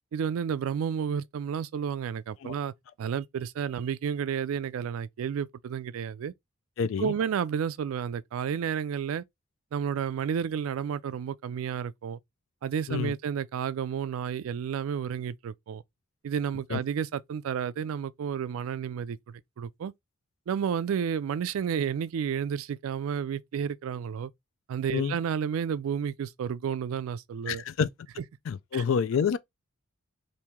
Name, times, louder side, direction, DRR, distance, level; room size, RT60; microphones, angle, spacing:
voice 1, 0.1-2.7 3.0-6.3 7.0-9.2 9.7-12.2 12.6-15.8 16.2-19.9 20.5-24.3 24.7-27.6 28.7-28.8, right 7 dB, 75° right, 0.3 m, -31 dB
voice 2, 6.8-7.1 12.9-13.1 16.7-16.8 24.9-25.2 27.5-27.9 28.5-29.4, left 6 dB, 65° left, 0.3 m, -28 dB
2.9 x 2.6 x 3.4 m
head